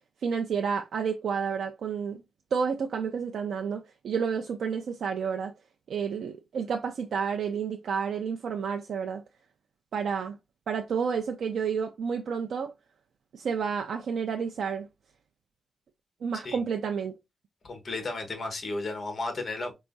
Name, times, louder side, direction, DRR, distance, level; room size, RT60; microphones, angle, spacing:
voice 1, 0.2-2.2 2.5-5.5 5.9-9.2 9.9-10.4 10.7-12.7 13.3-14.9 16.2-17.1, right 6 dB, 90° right, 0.4 m, -30 dB
voice 2, 17.6-19.7, left 2 dB, 40° left, 1.3 m, -33 dB
4.7 x 3.0 x 2.6 m
wide cardioid pair, 140°, 0 cm